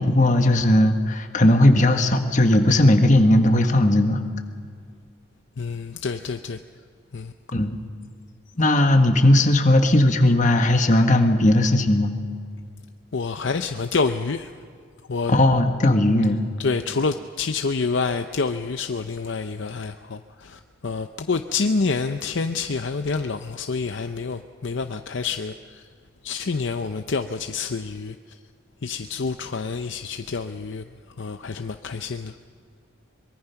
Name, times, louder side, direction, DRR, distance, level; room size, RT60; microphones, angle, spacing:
voice 1, 0.0-4.2 7.5-7.8 8.6-12.1 15.3-16.4, left 1 dB, 35° left, 5 dB, 1.5 m, -17 dB
voice 2, 5.6-6.6 7.1-7.3 13.1-14.5 15.1-15.4 16.6-25.8 26.2-28.2 28.8-30.8 31.2-32.3, left 4 dB, 60° left, 8 dB, 0.6 m, -27 dB
23.5 x 22.5 x 5.8 m, 2.2 s
head